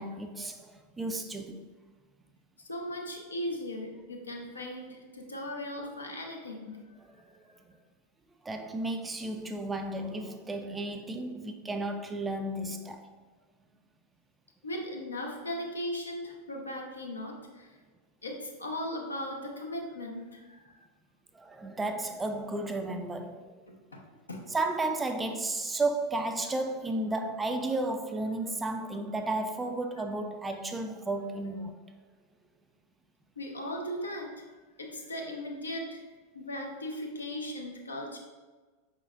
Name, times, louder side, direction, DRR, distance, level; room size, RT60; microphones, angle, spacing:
voice 1, 0.0-1.6 7.1-7.4 8.4-13.0 21.3-23.5 24.5-31.8, right 2 dB, 10° right, 0.3 m, -33 dB
voice 2, 2.6-6.9 14.6-17.7 18.2-20.9 23.7-24.0 24.3-24.5 33.4-34.4 34.8-36.0 36.3-38.2, left 1 dB, 75° left, 0.7 m, -38 dB
5.2 x 3.8 x 2.4 m
figure-of-eight pair, 90°, 0 cm